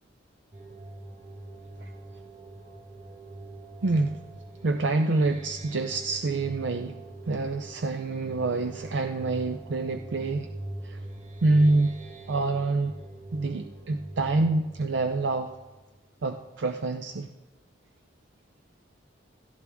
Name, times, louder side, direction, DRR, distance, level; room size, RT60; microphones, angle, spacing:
sound 1, 0.5-16.0, right 1 dB, 40° right, 1.7 m, -43 dB
voice 1, 3.8-4.2 4.6-7.0 7.3-10.5 10.8-11.0 11.4-12.0 12.3-12.9 13.3-15.5 16.2-17.3, right 2 dB, 85° right, 6 dB, 0.6 m, -26 dB
17.0 x 12.5 x 3.6 m, 1.1 s
head